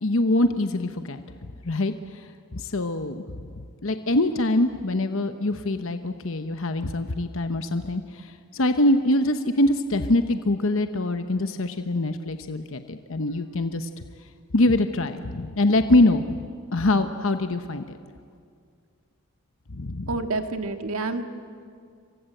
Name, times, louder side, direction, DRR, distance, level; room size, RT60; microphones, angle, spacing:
voice 1, 0.0-1.2 1.6-1.9 2.5-13.9 14.5-16.4 16.7-17.8 19.7-20.1, left 1 dB, 65° left, 9 dB, 1.0 m, -24 dB
voice 2, 20.1-21.2, right 3 dB, 75° right, 7 dB, 1.8 m, -28 dB
27.5 x 24.0 x 7.9 m, 2.2 s
head